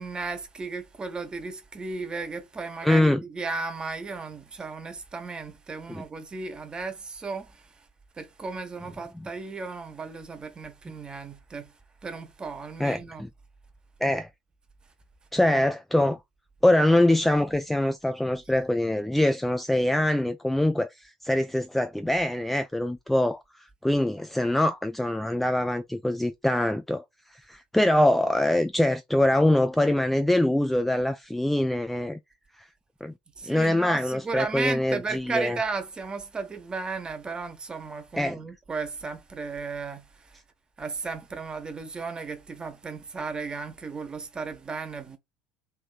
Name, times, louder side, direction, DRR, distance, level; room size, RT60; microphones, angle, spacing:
voice 1, 0.0-7.5 8.2-11.7 12.0-13.2 33.4-40.0 40.8-45.2, right 4 dB, 20° right, 0.9 m, -34 dB
voice 2, 2.8-3.2 5.9-6.0 9.1-9.3 12.8-13.0 14.0-14.3 15.3-16.2 16.6-27.0 27.3-32.2 33.0-33.1 33.5-35.6 38.2-38.4, left 1 dB, 5° left, 0.3 m, -24 dB
3.5 x 3.0 x 2.3 m
figure-of-eight pair, 65°, 4 cm